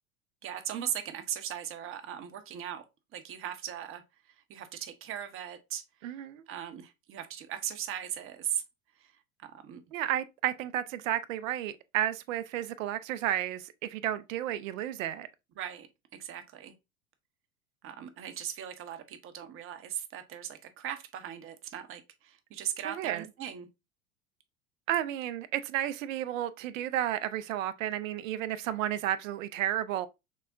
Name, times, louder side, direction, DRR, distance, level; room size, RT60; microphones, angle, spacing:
voice 1, 0.4-2.8 3.1-4.0 4.5-6.1 6.5-8.6 9.0-9.1 9.4-9.8 15.6-15.9 16.1-16.7 17.8-23.7, right 10 dB, 30° right, 0.7 m, -38 dB
voice 2, 6.0-6.4 9.9-15.3 22.8-23.3 24.9-30.1, right 12 dB, 65° right, 0.6 m, -32 dB
6.0 x 2.1 x 2.5 m
hypercardioid pair, 85°, 42 cm